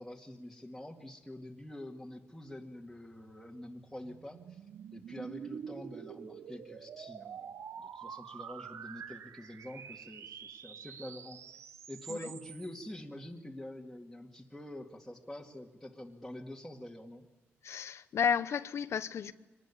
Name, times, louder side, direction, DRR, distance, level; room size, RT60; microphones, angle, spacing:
voice 1, 0.0-4.6 4.9-11.4 11.9-17.3, left 1 dB, 5° left, -3 dB, 2.3 m, -46 dB
sound 1, 3.1-12.8, right 8 dB, 75° right, 0.8 m, -47 dB
voice 2, 17.6-19.3, left 7 dB, 70° left, 12 dB, 0.9 m, -32 dB
25.0 x 20.0 x 10.0 m, 1.1 s
cardioid pair, 95°, 5 cm